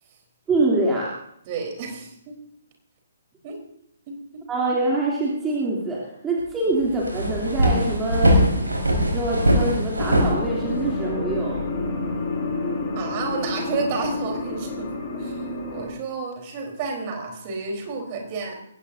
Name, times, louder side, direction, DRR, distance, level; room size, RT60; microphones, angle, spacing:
voice 1, 0.5-1.1 4.5-11.6, right 2 dB, 10° right, -4 dB, 3.0 m, -25 dB
voice 2, 1.5-2.4 3.4-3.6 4.1-4.4 12.9-14.9 15.2-15.4 15.7-18.6, right 4 dB, 30° right, 2 dB, 4.0 m, -31 dB
sound 1, 6.4-6.5 6.8-11.0, equal, 75° right, 4.8 m, -21 dB
sound 2, 10.0-15.9, left 2 dB, 30° left, 5.9 m, -29 dB
21.5 x 17.5 x 2.7 m, 0.73 s
figure-of-eight pair, 130°, 0 cm